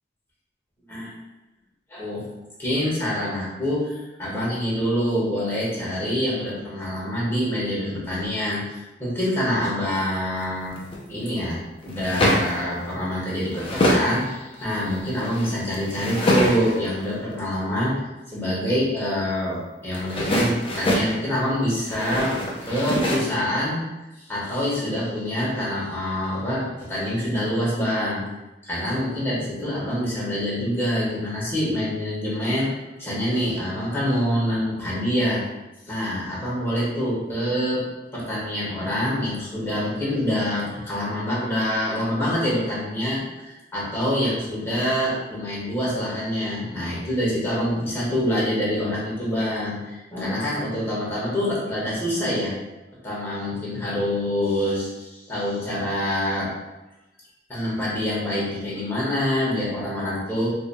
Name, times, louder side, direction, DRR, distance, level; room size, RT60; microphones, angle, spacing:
voice 1, 1.9-2.2 2.6-10.8 11.1-23.8 24.3-28.2 28.6-32.7 33.0-35.4 35.9-37.9 38.1-52.5 53.0-56.5 57.5-60.5, equal, 15° left, -7 dB, 1.3 m, -26 dB
sound 1, 10.4-11.0 11.8-12.6 13.1-14.1 14.5-16.9 19.9-21.1 21.8-23.2, equal, 30° left, 0.6 m, -24 dB
4.7 x 2.7 x 2.2 m, 1.0 s
head